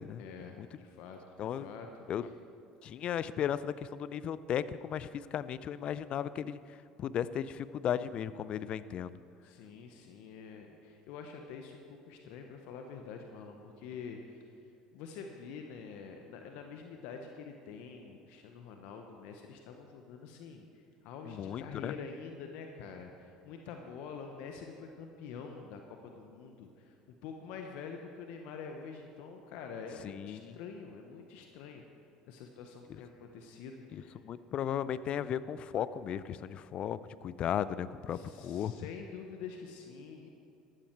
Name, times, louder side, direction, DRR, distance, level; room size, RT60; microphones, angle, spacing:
voice 1, 0.2-2.3 9.4-14.5 14.9-26.9 27.2-31.8 32.3-34.4 38.1-40.3, left 5 dB, 65° left, 4 dB, 1.1 m, -46 dB
voice 2, 2.8-6.6 7.0-9.1 21.3-22.0 30.0-30.6 33.9-38.7, left 9 dB, 50° left, 16 dB, 0.5 m, -35 dB
14.0 x 12.5 x 4.6 m, 2.6 s
hypercardioid pair, 70°, 2 cm